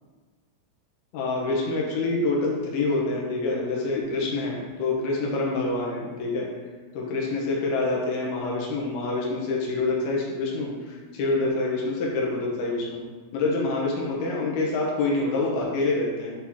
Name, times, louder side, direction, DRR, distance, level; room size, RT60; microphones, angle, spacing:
voice 1, 1.1-6.5 6.9-13.0 13.3-16.4, left 3 dB, 75° left, -3 dB, 2.5 m, -26 dB
8.7 x 4.0 x 2.9 m, 1.4 s
omnidirectional pair, 5.3 m